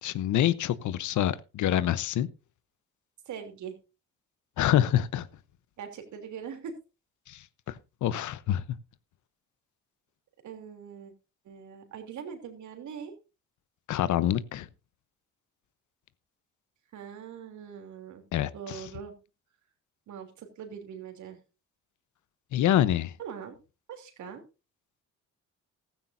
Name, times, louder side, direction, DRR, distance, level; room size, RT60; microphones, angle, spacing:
voice 1, 0.0-2.3 4.6-5.3 7.3-8.6 13.9-14.7 18.3-18.9 22.5-23.1, left 11 dB, 75° left, 0.9 m, -26 dB
voice 2, 3.3-3.8 5.8-6.8 10.4-11.1 11.4-13.1 16.9-18.2 18.5-19.1 20.1-21.4 23.2-23.6 23.9-24.4, right 7 dB, 75° right, 3.0 m, -42 dB
15.0 x 14.0 x 2.6 m
cardioid pair, 90°, 30 cm